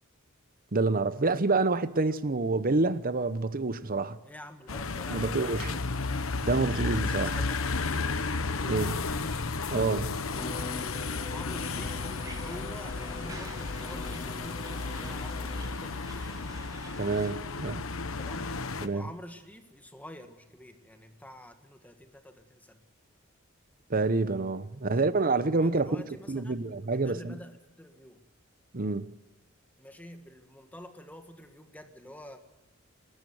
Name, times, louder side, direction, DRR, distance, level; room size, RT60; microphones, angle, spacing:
voice 1, 0.7-4.2 5.1-5.7 6.5-7.4 8.6-8.9 9.7-10.1 17.0-17.8 18.8-19.1 23.9-26.0 26.3-27.4 28.7-29.1, right 3 dB, 45° right, 0.9 m, -27 dB
voice 2, 4.2-6.2 10.7-16.3 18.2-22.8 24.8-25.2 25.6-28.2 29.8-32.4, left 1 dB, 10° left, 1.7 m, -48 dB
sound 1, 4.7-18.9, left 4 dB, 85° left, 1.1 m, -33 dB
Bowed string instrument, 10.3-16.0, left 3 dB, 25° left, 0.7 m, -43 dB
sound 2, 11.6-17.3, right 2 dB, 20° right, 6.6 m, -49 dB
27.5 x 13.0 x 8.0 m
head